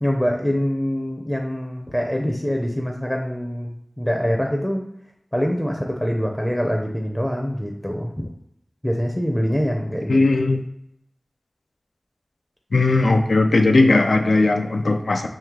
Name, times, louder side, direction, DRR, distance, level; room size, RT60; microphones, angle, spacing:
voice 1, 0.0-4.9 5.3-8.1 8.8-10.2, equal, 5° left, 1 dB, 0.5 m, -24 dB
voice 2, 10.1-10.6 12.7-15.3, left 2 dB, 85° left, 5 dB, 0.4 m, -17 dB
3.1 x 2.8 x 3.6 m, 0.76 s
wide cardioid pair, 55°, 0 cm